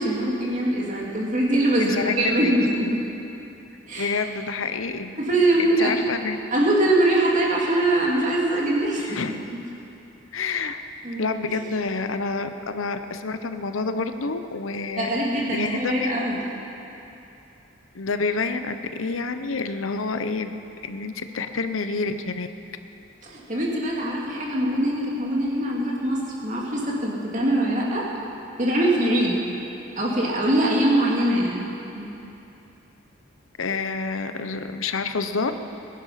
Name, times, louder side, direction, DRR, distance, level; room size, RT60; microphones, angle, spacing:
voice 1, 0.0-2.9 3.9-4.1 5.2-5.9 6.5-9.2 11.0-11.6 15.0-16.4 23.2-28.0 28.6-29.4 30.0-31.6 31.9-32.1, right 1 dB, 40° right, -3 dB, 2.5 m, -23 dB
voice 2, 1.8-2.6 4.0-5.1 5.6-6.4 9.0-9.4 10.3-10.8 11.2-15.1 15.4-16.1 17.9-20.6 20.8-22.5 33.6-35.5, left 4 dB, 85° left, 9 dB, 0.8 m, -28 dB
21.5 x 10.5 x 5.7 m, 2.9 s
head